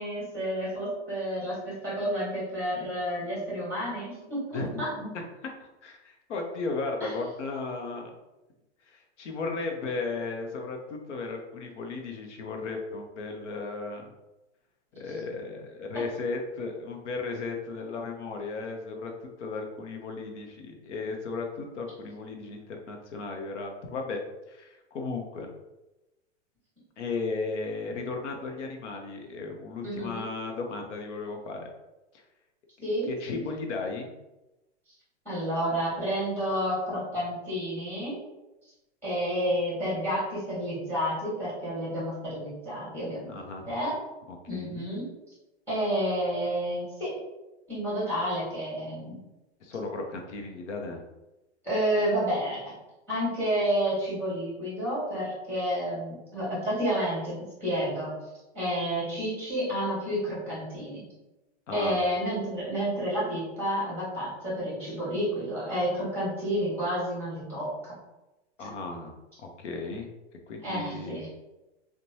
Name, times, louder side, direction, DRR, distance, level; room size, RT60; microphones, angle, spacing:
voice 1, 0.0-4.9 7.0-7.1 15.9-16.0 29.8-30.2 32.8-33.4 35.2-38.2 39.0-43.3 43.7-43.9 44.5-45.1 45.7-47.1 47.7-49.2 51.6-52.7 53.1-58.1 58.5-61.1 61.7-67.9 70.6-71.3, equal, 5° left, -7 dB, 1.3 m, -30 dB
voice 2, 4.5-5.2 5.8-8.1 8.9-14.1 14.9-19.1 19.4-24.2 24.5-25.5 27.0-31.7 33.0-34.1 43.3-43.7 44.3-44.9 49.6-51.0 61.7-62.0 68.6-70.1 70.5-71.2, left 3 dB, 80° left, 3 dB, 0.7 m, -35 dB
2.9 x 2.2 x 2.7 m, 1.0 s
hypercardioid pair, 130°, 35 cm